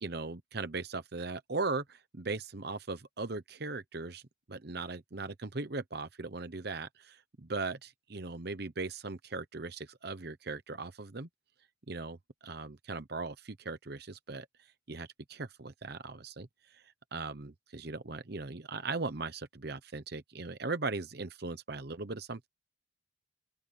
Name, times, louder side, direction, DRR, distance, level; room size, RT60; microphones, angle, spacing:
voice 1, 0.0-4.2 4.5-11.3 11.9-12.2 12.4-14.5 14.9-22.5, right 3 dB, 55° right, 1.0 m, -39 dB
open air
head